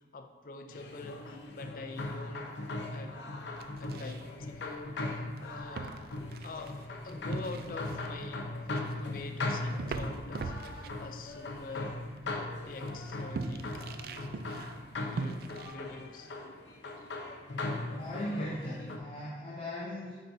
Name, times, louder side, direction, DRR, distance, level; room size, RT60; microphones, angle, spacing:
voice 1, 0.0-2.5 2.9-3.2 3.8-6.0 6.4-8.5 9.0-12.0 12.6-13.7 14.9-16.3 17.0-17.1, left 3 dB, 50° left, 5 dB, 0.4 m, -46 dB
sound 1, 0.7-19.0, left 2 dB, 85° left, 0.7 m, -39 dB
sound 2, 3.6-15.8, right 3 dB, 55° right, 0.3 m, -43 dB
voice 2, 18.0-20.2, left 1 dB, 30° left, -8 dB, 0.9 m, -38 dB
8.7 x 4.6 x 2.7 m, 1.4 s
head